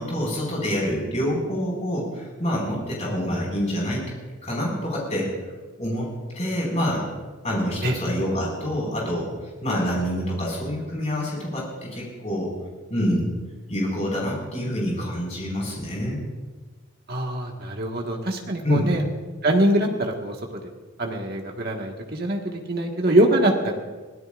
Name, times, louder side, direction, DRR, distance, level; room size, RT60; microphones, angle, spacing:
voice 1, 0.0-4.0 4.4-5.3 5.8-6.1 6.4-7.0 7.4-9.3 9.6-12.5 12.9-13.3 13.7-16.2 18.6-18.9, equal, 30° left, -3 dB, 5.5 m, -26 dB
voice 2, 17.1-19.0 19.4-20.6 21.0-23.7, right 1 dB, 45° right, 1 dB, 1.7 m, -23 dB
24.0 x 16.5 x 2.6 m, 1.3 s
head